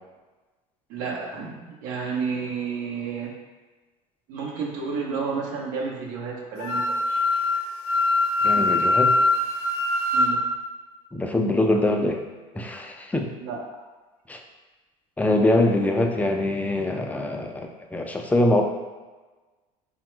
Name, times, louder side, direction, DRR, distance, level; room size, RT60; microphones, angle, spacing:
voice 1, 0.9-3.3 4.3-7.4 10.1-10.4 13.4-13.6, right 5 dB, 75° right, -1 dB, 0.7 m, -31 dB
Wind instrument woodwind instrument, 6.6-10.3, left 2 dB, 80° left, 0.5 m, -22 dB
voice 2, 8.4-9.1 11.1-12.2 12.5-13.3 14.3-14.4 15.2-18.6, left 1 dB, 10° left, 3 dB, 0.3 m, -23 dB
3.0 x 2.1 x 3.1 m, 1.2 s
hypercardioid pair, 80°, 19 cm